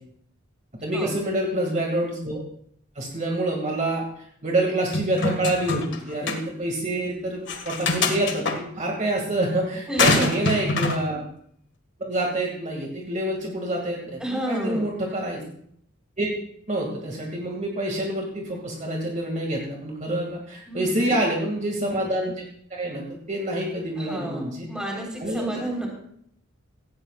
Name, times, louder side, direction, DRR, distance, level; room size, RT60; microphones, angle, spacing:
voice 1, 0.8-2.4 3.0-4.0 4.4-11.2 12.0-15.4 16.2-16.3 16.7-22.4 22.7-24.7 25.2-25.5, right 1 dB, 35° right, -1 dB, 2.2 m, -27 dB
sound 1, 4.9-6.0 6.3-6.4 7.5-8.6 10.0-11.0, left 3 dB, 60° left, 1.8 m, -24 dB
voice 2, 9.9-10.4 14.2-14.9 20.7-21.2 24.0-25.9, right 1 dB, 5° right, -2 dB, 3.8 m, -31 dB
17.5 x 15.5 x 2.4 m, 0.66 s
head